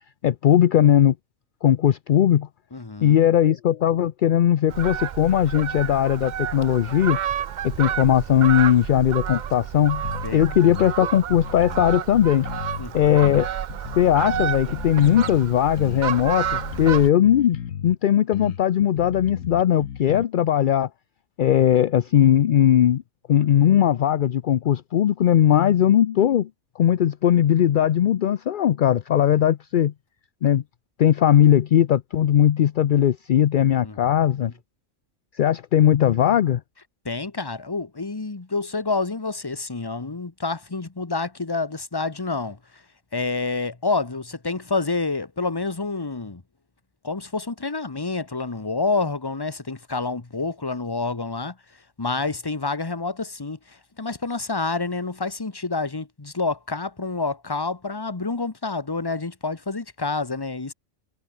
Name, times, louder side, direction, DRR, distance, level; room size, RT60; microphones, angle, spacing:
voice 1, 0.2-1.1 1.6-2.5 3.0-7.2 7.6-10.1 10.3-12.5 12.9-13.5 14.0-17.6 17.8-20.9 21.4-23.0 23.3-26.5 26.8-29.9 30.4-30.6 31.0-34.5 35.4-36.6, left 10 dB, 55° left, 0.5 m, -19 dB
voice 2, 2.7-3.2 10.2-10.4 12.8-13.1 33.8-34.0 34.4-34.5 37.0-42.6 43.1-46.4 47.0-51.5 52.0-60.7, left 3 dB, 20° left, 1.2 m, -28 dB
Fowl, 4.7-17.1, right 9 dB, 55° right, 0.5 m, -30 dB
sound 1, 10.0-10.3 10.7-12.9 13.2-15.4 15.8-18.0 18.3-20.2, left 9 dB, 90° left, 1.4 m, -35 dB
omnidirectional pair, 1.3 m